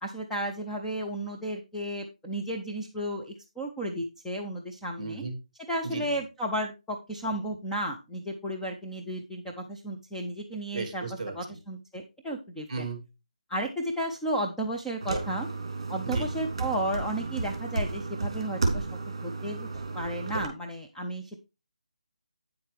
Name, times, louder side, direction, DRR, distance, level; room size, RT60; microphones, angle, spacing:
voice 1, 0.0-5.2 5.7-11.0 11.3-12.9 13.5-15.5 15.9-19.7 19.9-21.4, right 1 dB, ahead, -2 dB, 0.4 m, -33 dB
voice 2, 5.0-5.4 5.8-6.2 10.7-11.4 12.7-13.0 16.0-16.3, right 4 dB, 20° right, 6 dB, 2.2 m, -35 dB
sound 1, 15.0-20.5, right 3 dB, 40° right, 2.9 m, -32 dB
9.5 x 7.6 x 3.3 m, 0.27 s
figure-of-eight pair, 175°, 4 cm